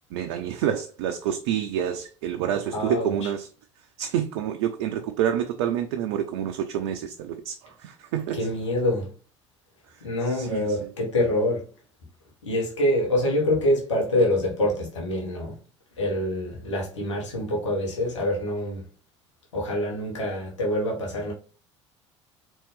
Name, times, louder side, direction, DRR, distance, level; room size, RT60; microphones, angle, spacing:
voice 1, 0.1-3.5 4.0-8.5 9.9-10.9, right 9 dB, 60° right, 0.5 m, -28 dB
voice 2, 2.7-3.1 8.3-9.1 10.0-11.7 12.4-15.6 16.0-18.8 19.5-21.3, left 1 dB, 75° left, 1.5 m, -25 dB
4.3 x 3.0 x 3.2 m
figure-of-eight pair, 65°, 15 cm